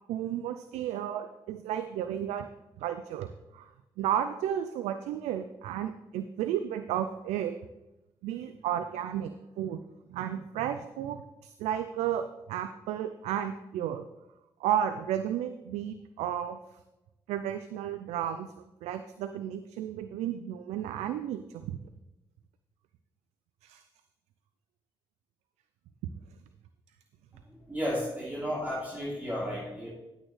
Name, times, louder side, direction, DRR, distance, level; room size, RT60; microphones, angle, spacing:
voice 1, 0.1-2.5 2.8-3.3 3.5-3.7 4.0-7.6 8.2-9.8 10.1-14.0 14.6-16.6 17.3-18.5 18.8-21.7 23.6-23.8, right 10 dB, 85° right, 10 dB, 0.4 m, -33 dB
voice 2, 27.5-29.9, equal, 15° right, -6 dB, 3.0 m, -33 dB
11.0 x 8.9 x 3.2 m, 0.98 s
hypercardioid pair, 45°, 11 cm